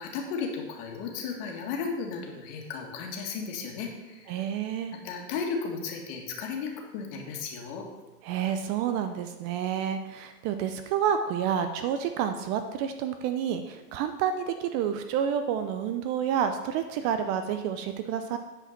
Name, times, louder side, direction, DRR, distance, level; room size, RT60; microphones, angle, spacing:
voice 1, 0.0-4.4 5.0-7.9, left 5 dB, 50° left, 1 dB, 2.1 m, -34 dB
voice 2, 4.3-4.9 8.2-18.4, right 8 dB, 35° right, 8 dB, 0.5 m, -29 dB
9.7 x 5.1 x 5.7 m, 1.1 s
hypercardioid pair, 120°, 48 cm